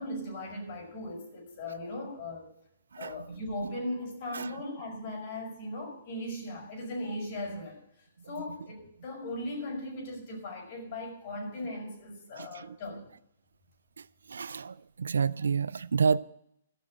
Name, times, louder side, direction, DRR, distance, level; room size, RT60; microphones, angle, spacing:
voice 1, 0.0-2.5 3.0-13.1, left 1 dB, 50° left, 5.4 m, -38 dB
voice 2, 12.4-12.7 14.3-16.2, right 5 dB, 85° right, 0.4 m, -29 dB
14.0 x 6.3 x 7.7 m
hypercardioid pair, 140°, 0 cm